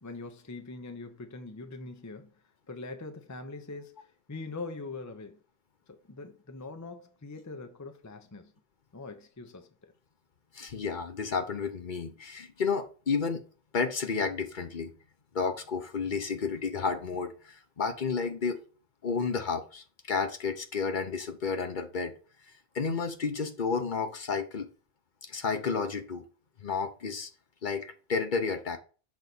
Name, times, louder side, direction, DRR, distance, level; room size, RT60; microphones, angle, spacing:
voice 1, 0.0-2.3 2.7-5.4 5.9-8.5 8.9-9.7, left 3 dB, 20° left, 0.5 m, -42 dB
voice 2, 10.5-13.4 13.7-14.9 15.3-18.6 19.0-22.1 22.7-24.7 25.3-26.2 26.6-27.3 27.6-28.8, left 5 dB, 50° left, 0.9 m, -31 dB
6.3 x 4.0 x 4.0 m
omnidirectional pair, 1.1 m